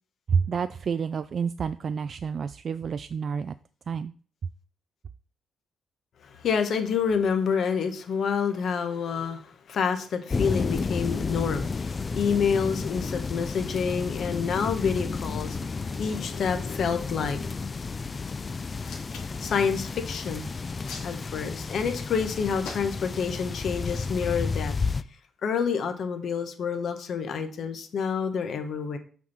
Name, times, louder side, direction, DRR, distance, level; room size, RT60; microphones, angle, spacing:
voice 1, 0.3-3.5 3.9-4.1, right 6 dB, 50° right, 12 dB, 0.3 m, -29 dB
voice 2, 6.2-17.6 19.2-20.5 21.0-24.7 25.4-29.0, left 6 dB, 60° left, 7 dB, 1.3 m, -28 dB
sound 1, 10.3-25.0, left 4 dB, 35° left, 0.4 m, -32 dB
Hands, 18.7-19.4 20.5-21.6 22.6-23.2 23.8-24.0, left 5 dB, 85° left, 2.2 m, -41 dB
6.0 x 4.6 x 5.6 m, 0.43 s
cardioid pair, 90°, 0 cm